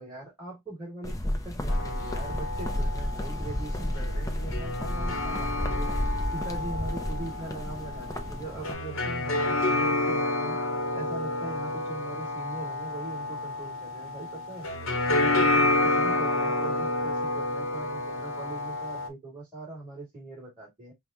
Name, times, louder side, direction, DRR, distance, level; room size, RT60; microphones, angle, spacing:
voice 1, 0.0-5.9 6.3-10.6 10.9-14.7 15.1-20.9, right 2 dB, 20° right, 2.5 m, -41 dB
sound 1, 1.0-8.7, left 1 dB, 15° left, 0.5 m, -32 dB
sound 2, 1.7-19.1, left 2 dB, 70° left, 0.9 m, -29 dB
5.4 x 2.2 x 2.8 m
head